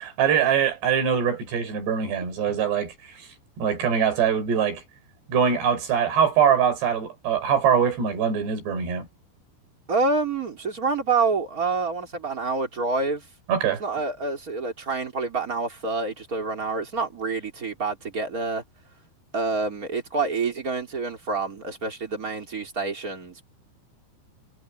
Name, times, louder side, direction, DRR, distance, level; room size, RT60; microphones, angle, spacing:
voice 1, 0.0-3.3 3.6-4.8 5.3-9.1 13.5-13.8, right 7 dB, 65° right, 6.8 m, -23 dB
voice 2, 9.9-13.2 13.8-18.6 19.3-23.5, right 4 dB, 20° right, 2.9 m, -27 dB
omnidirectional pair, 5.3 m